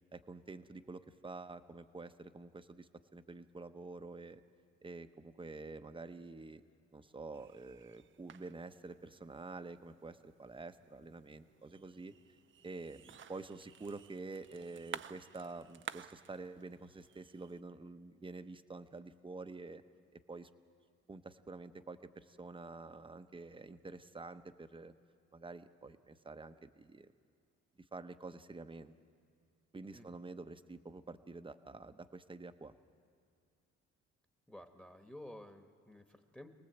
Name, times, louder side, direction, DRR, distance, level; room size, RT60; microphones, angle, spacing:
voice 1, 0.1-4.4 4.8-6.6 6.9-12.1 12.6-19.8 20.3-20.5 21.1-24.9 25.3-27.1 27.9-28.9 29.7-32.7, right 3 dB, 15° right, 10 dB, 0.9 m, -48 dB
sound 1, 7.3-17.6, right 9 dB, 40° right, 0.5 m, -53 dB
voice 2, 34.5-36.5, left 1 dB, 5° left, 6 dB, 1.3 m, -52 dB
27.0 x 18.5 x 8.0 m, 2.3 s
cardioid pair, 90°, 30 cm